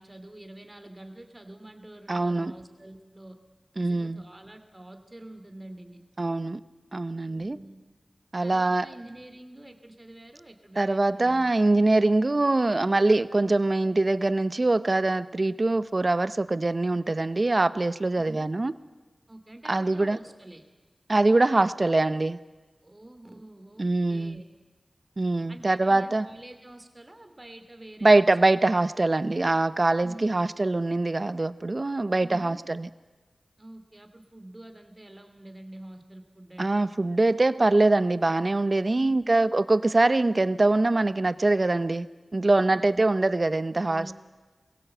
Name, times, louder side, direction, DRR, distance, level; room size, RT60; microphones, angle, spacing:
voice 1, 0.0-3.4 3.8-6.0 7.2-7.8 8.4-11.5 18.2-18.6 19.3-20.6 22.8-24.4 25.5-28.4 30.0-30.5 32.2-32.7 33.6-36.9 39.0-39.4 42.7-43.1 43.8-44.1, right 1 dB, 30° right, 2.8 m, -46 dB
voice 2, 2.1-2.5 3.8-4.2 6.2-6.6 6.9-7.6 8.3-8.9 10.8-18.7 19.7-20.2 21.1-22.4 23.8-24.4 25.2-26.3 28.0-32.9 36.6-44.1, right 2 dB, 50° right, 0.8 m, -23 dB
23.0 x 16.5 x 7.9 m
cardioid pair, 40°, 0 cm